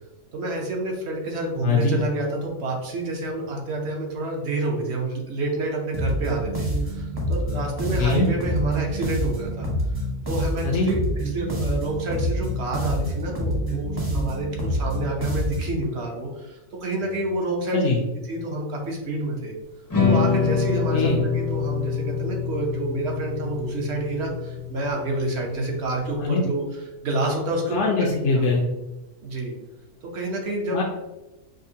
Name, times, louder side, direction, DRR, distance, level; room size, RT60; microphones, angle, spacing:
voice 1, 0.3-9.7 10.3-11.0 11.2-17.8 18.3-19.6 20.0-27.8 28.3-28.4 29.2-29.5 30.0-30.8, right 2 dB, 60° right, 0 dB, 1.0 m, -28 dB
voice 2, 1.6-2.0 7.9-8.3 10.6-10.9 17.7-18.0 20.9-21.2 26.2-26.4 27.7-28.7 30.7-30.8, left 4 dB, 75° left, -2 dB, 0.9 m, -22 dB
sound 1, 5.9-15.8, equal, 25° right, 0.7 m, -27 dB
sound 2, 19.9-26.2, left 6 dB, 25° left, 0.5 m, -26 dB
5.1 x 2.1 x 2.7 m, 1.0 s
omnidirectional pair, 1.3 m